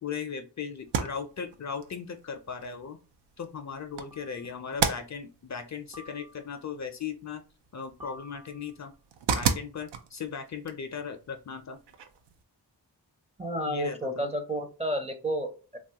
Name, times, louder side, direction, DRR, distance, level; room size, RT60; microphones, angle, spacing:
voice 1, 0.0-3.0 3.4-7.4 7.7-8.9 9.3-11.8 13.7-14.3, left 6 dB, 45° left, 7 dB, 0.4 m, -37 dB
sound 1, 0.8-12.4, right 6 dB, 90° right, 0.5 m, -36 dB
sound 2, 0.9-1.0 2.5-2.8 4.1-4.7 5.9-6.7 8.0-8.9, left 1 dB, 55° right, 0.9 m, -51 dB
voice 2, 13.4-15.8, equal, 15° right, 6 dB, 0.5 m, -31 dB
3.0 x 2.3 x 2.7 m, 0.34 s
wide cardioid pair, 65°, 41 cm